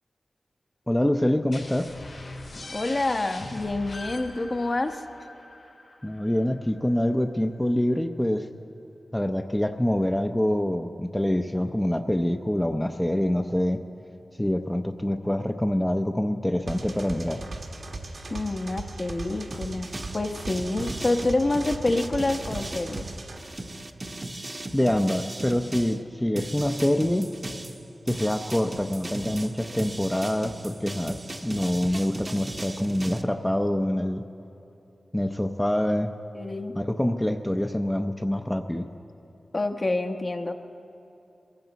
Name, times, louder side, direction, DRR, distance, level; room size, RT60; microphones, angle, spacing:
voice 1, 0.9-1.9 6.0-8.5 9.1-13.8 14.4-17.4 24.7-27.3 28.1-34.2 35.1-36.1 36.8-38.9, left 1 dB, 10° left, 6 dB, 0.6 m, -25 dB
sound 1, 1.5-7.0, left 2 dB, 80° left, 3.9 m, -41 dB
voice 2, 2.7-5.0 18.3-23.1 36.3-36.8 39.5-40.5, left 2 dB, 45° left, 5 dB, 0.9 m, -27 dB
sound 2, 16.7-23.4, right 2 dB, 75° right, 1.4 m, -38 dB
sound 3, 19.5-26.0 26.4-33.2, right 2 dB, 35° right, 0.9 m, -37 dB
22.5 x 15.0 x 4.1 m, 2.8 s
cardioid pair, 55°, 0 cm